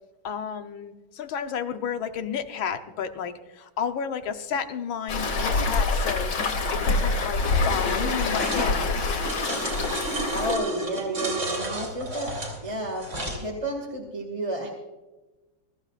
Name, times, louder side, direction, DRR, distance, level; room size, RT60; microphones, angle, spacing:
voice 1, 0.2-6.4 6.7-8.9, left 7 dB, 80° left, 8 dB, 1.7 m, -32 dB
Waves surf, 5.1-10.5, left 3 dB, 65° left, 2.1 m, -25 dB
sound 1, 8.4-8.7 9.2-13.4, right 1 dB, 35° right, 3.5 m, -31 dB
voice 2, 10.3-12.3 12.6-14.7, right 1 dB, 15° right, 0 dB, 2.0 m, -31 dB
23.0 x 13.5 x 2.4 m, 1.1 s
omnidirectional pair, 2.2 m